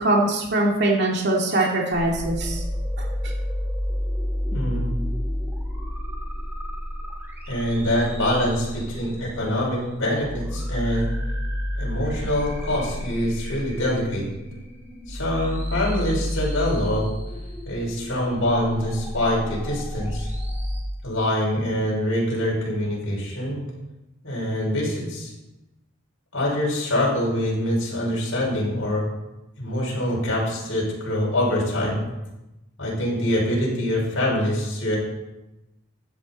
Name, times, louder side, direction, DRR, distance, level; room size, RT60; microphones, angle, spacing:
voice 1, 0.0-2.6 3.0-3.1, right 2 dB, 50° right, -2 dB, 2.6 m, -22 dB
sound 1, 1.9-20.8, left 1 dB, 10° right, 2.3 m, -30 dB
voice 2, 4.5-4.9 7.5-11.1 11.8-14.2 15.1-17.0 17.6-20.3 21.0-23.6 24.2-25.3 26.3-29.0 29.6-32.0 32.8-35.0, left 1 dB, 70° left, -4 dB, 5.9 m, -24 dB
15.0 x 10.0 x 4.3 m, 0.98 s
head